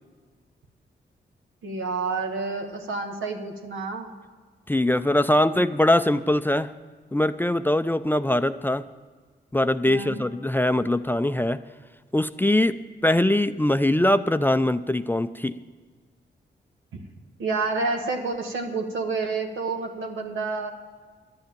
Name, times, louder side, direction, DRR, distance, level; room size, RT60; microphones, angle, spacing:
voice 1, 1.6-4.1 9.8-10.2 16.9-17.0 17.4-20.7, right 3 dB, 85° right, 2 dB, 1.4 m, -29 dB
voice 2, 4.7-6.7 7.1-8.8 9.5-11.6 12.1-15.6, left 1 dB, 10° left, 12 dB, 0.4 m, -22 dB
11.5 x 8.1 x 8.8 m, 1.5 s
cardioid pair, 50°, 20 cm